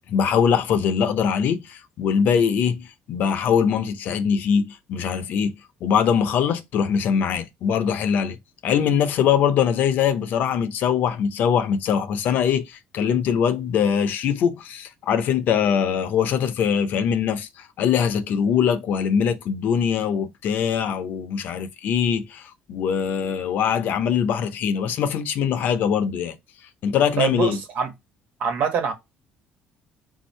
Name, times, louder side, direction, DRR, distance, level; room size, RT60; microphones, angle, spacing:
voice 1, 0.1-5.5 5.8-8.4 8.6-26.4 26.8-27.6, left 7 dB, 65° left, 0.7 m, -22 dB
voice 2, 27.2-27.9 28.4-28.9, right 7 dB, 65° right, 1.4 m, -24 dB
4.0 x 2.7 x 4.3 m
cardioid pair, 110°, 3 cm